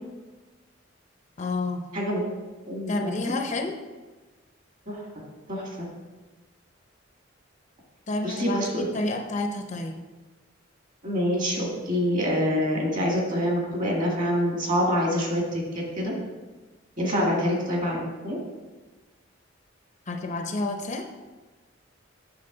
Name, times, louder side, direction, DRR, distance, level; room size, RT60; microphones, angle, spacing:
voice 1, 1.4-1.8 2.9-3.8 8.1-10.0 17.2-17.3 20.1-21.1, left 2 dB, 40° left, 4 dB, 0.6 m, -30 dB
voice 2, 2.7-3.3 4.9-5.0 5.5-5.7 8.2-8.9 11.0-16.1 17.0-18.4, equal, 40° right, -1 dB, 1.9 m, -26 dB
7.7 x 6.1 x 3.8 m, 1.2 s
head